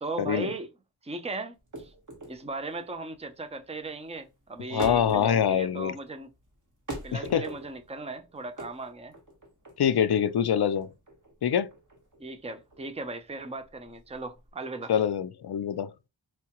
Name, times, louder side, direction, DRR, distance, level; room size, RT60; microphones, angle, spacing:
voice 1, 0.0-0.7 1.0-1.9 2.3-6.3 7.0-9.1 12.2-14.9, right 3 dB, 15° right, 0.5 m, -37 dB
sound 1, 1.6-14.5, right 1 dB, 45° right, 1.3 m, -43 dB
voice 2, 4.7-5.9 7.1-7.4 9.8-10.9 11.4-11.7 14.9-15.9, left 8 dB, 65° left, 0.5 m, -25 dB
4.6 x 2.2 x 2.9 m
wide cardioid pair, 65°, 42 cm